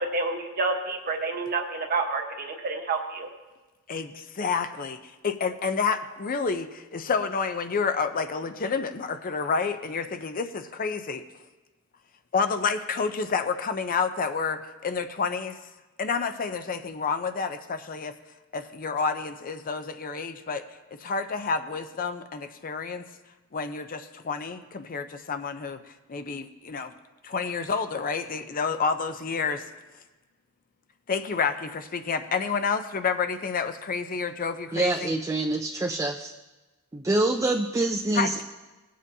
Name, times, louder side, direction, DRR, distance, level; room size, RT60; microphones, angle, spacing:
voice 1, 0.1-3.3, right 3 dB, 45° right, 3 dB, 1.1 m, -29 dB
voice 2, 3.9-11.2 12.3-15.6 16.0-18.1 18.5-20.6 21.0-23.0 23.5-25.8 26.1-26.9 27.2-29.7 31.1-35.1 38.1-38.4, left 5 dB, 40° left, 9 dB, 0.5 m, -29 dB
voice 3, 34.7-36.3 36.9-38.4, right 2 dB, 15° right, 2 dB, 0.4 m, -26 dB
18.0 x 7.5 x 2.7 m, 1.2 s
head